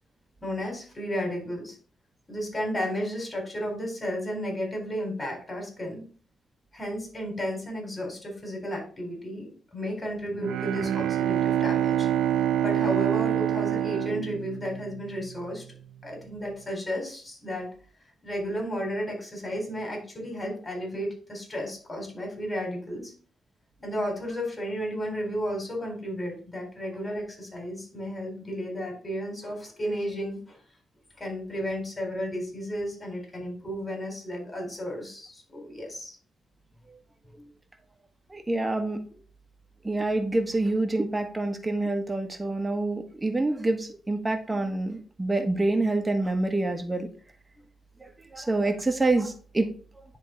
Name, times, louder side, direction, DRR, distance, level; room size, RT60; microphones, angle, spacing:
voice 1, 0.4-1.8 2.3-6.0 6.7-12.1 12.6-15.6 16.0-17.7 18.2-23.1 23.8-30.6 31.2-36.2 37.4-37.5, equal, 25° left, 0 dB, 4.1 m, -33 dB
Bowed string instrument, 10.3-15.2, right 10 dB, 90° right, 0.4 m, -26 dB
voice 2, 38.3-39.0 39.8-47.1 48.0-49.7, right 2 dB, 20° right, 5 dB, 1.3 m, -27 dB
10.0 x 3.7 x 3.9 m, 0.41 s
cardioid pair, 70°, 0 cm